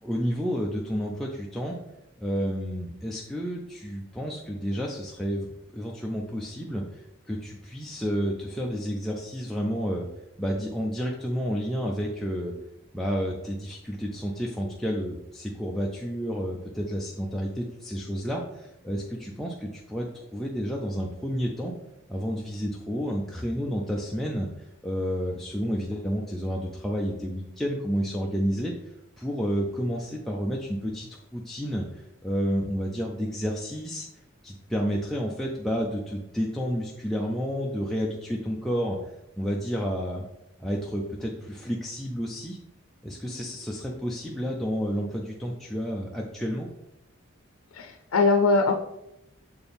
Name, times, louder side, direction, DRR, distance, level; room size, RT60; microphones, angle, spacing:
voice 1, 0.0-1.8 2.2-5.5 5.7-10.1 10.4-12.5 12.9-21.7 22.1-28.7 29.2-34.1 34.4-40.2 40.6-42.6 43.0-46.7, equal, ahead, -2 dB, 0.5 m, -30 dB
voice 2, 47.7-48.7, left 3 dB, 90° left, 5 dB, 0.5 m, -21 dB
6.8 x 4.4 x 3.5 m, 0.85 s
head